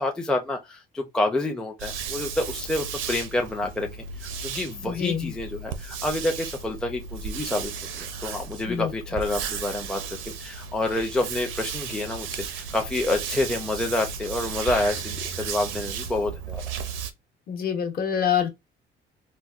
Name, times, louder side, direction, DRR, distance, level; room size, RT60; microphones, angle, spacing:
voice 1, 0.0-16.6, left 2 dB, 5° left, 0.5 m, -28 dB
sound 1, 1.8-17.1, right 6 dB, 90° right, 0.5 m, -34 dB
voice 2, 4.8-5.3 8.7-8.9 17.5-18.5, left 8 dB, 50° left, 0.9 m, -26 dB
4.0 x 2.2 x 2.4 m
cardioid pair, 130°, 20 cm